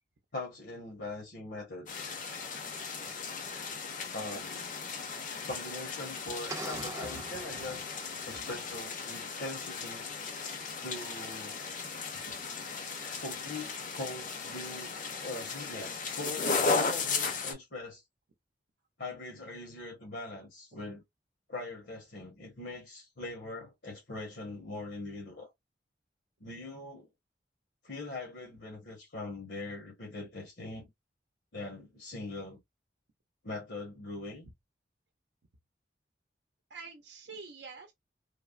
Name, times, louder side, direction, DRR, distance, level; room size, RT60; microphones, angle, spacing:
voice 1, 0.3-1.9 4.1-4.6 5.4-7.9 8.2-10.0 10.8-11.6 13.2-18.0 19.0-21.0 21.5-25.5 26.4-27.1 27.8-30.9 31.5-32.6 33.4-34.5, left 2 dB, 75° left, 1.1 m, -42 dB
sound 1, 1.9-17.5, left 4 dB, 45° left, 0.6 m, -36 dB
sound 2, 6.5-8.4, right 2 dB, 20° right, 0.4 m, -43 dB
voice 2, 6.7-7.3 7.6-7.7 12.2-12.4 36.7-37.9, right 3 dB, 80° right, 0.6 m, -47 dB
3.3 x 2.1 x 2.4 m
head